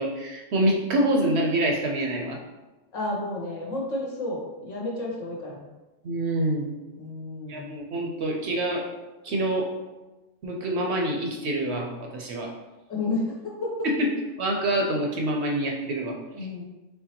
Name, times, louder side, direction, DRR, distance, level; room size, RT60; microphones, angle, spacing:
voice 1, 0.0-2.4 6.0-6.7 7.5-8.9 9.2-9.7 10.4-12.5 13.8-14.1 14.4-16.2, right 1 dB, 65° right, 0 dB, 0.8 m, -26 dB
voice 2, 2.9-5.7 7.0-7.7 12.9-13.7 16.3-16.6, left 2 dB, 70° left, -3 dB, 1.4 m, -31 dB
4.5 x 3.2 x 2.9 m, 1.1 s
omnidirectional pair, 1.4 m